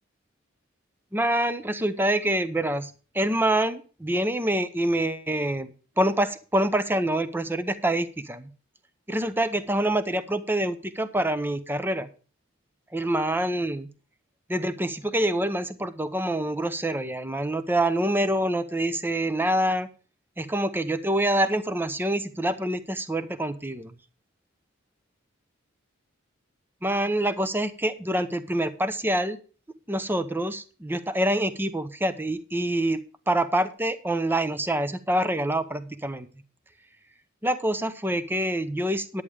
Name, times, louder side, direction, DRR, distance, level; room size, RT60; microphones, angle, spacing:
voice 1, 1.1-5.7 6.0-8.5 9.1-12.1 12.9-13.9 14.5-19.9 20.4-23.9 26.8-29.4 29.9-33.0 33.3-36.3 37.4-39.2, right 1 dB, 10° right, 12 dB, 0.8 m, -26 dB
10.5 x 8.7 x 4.9 m, 0.36 s
head